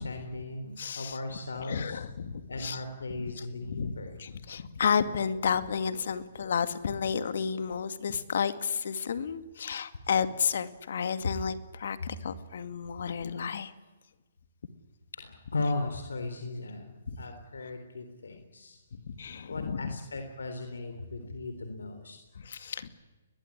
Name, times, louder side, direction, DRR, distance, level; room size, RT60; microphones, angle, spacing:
voice 1, 0.0-2.0 2.5-4.2 15.1-18.8 19.5-22.2, left 2 dB, 90° left, 7 dB, 3.8 m, -37 dB
voice 2, 0.8-1.2 1.6-2.8 3.2-13.7 18.9-19.9 21.2-21.3 22.4-22.9, left 6 dB, 65° left, 11 dB, 2.2 m, -32 dB
21.0 x 20.5 x 9.9 m, 1.3 s
hypercardioid pair, 150°, 0 cm